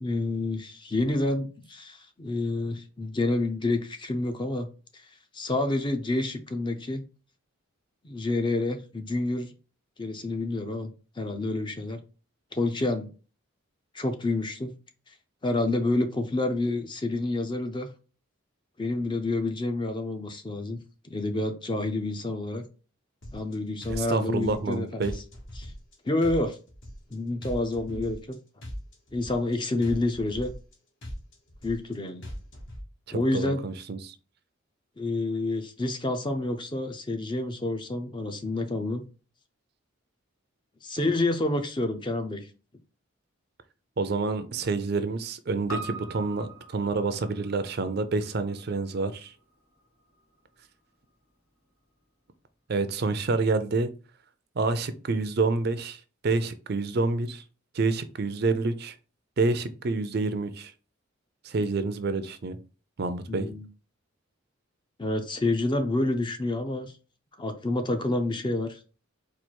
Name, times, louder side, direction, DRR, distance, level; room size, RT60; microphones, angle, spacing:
voice 1, 0.0-4.7 4.9-5.1 5.3-7.0 8.0-9.5 10.0-12.0 12.5-13.1 13.9-14.7 15.1-15.2 15.4-17.9 18.8-20.8 21.0-22.6 23.3-25.2 25.6-25.7 26.0-26.6 27.1-28.4 29.1-30.5 31.6-32.2 33.1-33.6 35.0-39.0 40.8-42.5 63.3-63.7 65.0-66.9 67.4-68.8, left 2 dB, 20° left, 7 dB, 0.5 m, -28 dB
sound 1, 23.2-23.5 23.8-24.7 25.0-25.9 26.2-27.1 27.4-28.3 28.6-29.5 29.8-30.7 31.0-31.9 32.2-32.8, equal, 60° left, 1.6 m, -39 dB
voice 2, 23.9-25.1 33.1-34.1 44.0-49.3 52.7-53.9 54.6-57.4 57.7-58.9 59.4-60.7 61.4-62.6 63.0-63.5, right 3 dB, 50° right, 11 dB, 0.4 m, -28 dB
Piano, 45.7-50.2 50.5-50.6, right 3 dB, 80° left, 1.9 m, -43 dB
4.4 x 2.4 x 4.4 m, 0.35 s
head